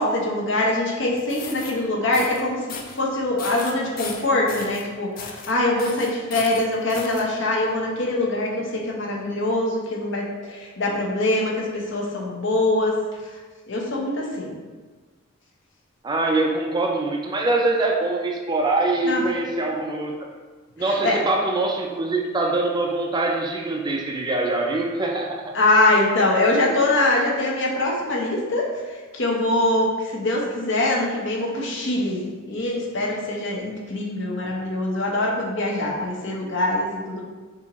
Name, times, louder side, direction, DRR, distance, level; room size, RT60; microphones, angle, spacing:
voice 1, 0.0-12.9 13.7-14.5 19.1-19.2 20.8-21.2 25.5-28.7 29.1-37.2, left 2 dB, 60° left, -2 dB, 0.8 m, -23 dB
sound 1, 1.2-1.7 2.1-2.4 2.7-3.0 3.4-4.8 5.2-5.5 5.8-7.2, left 5 dB, 45° left, 0.4 m, -36 dB
voice 2, 16.0-20.1 20.8-25.6, right 2 dB, 20° right, 0 dB, 0.4 m, -23 dB
5.7 x 2.5 x 3.0 m, 1.4 s
head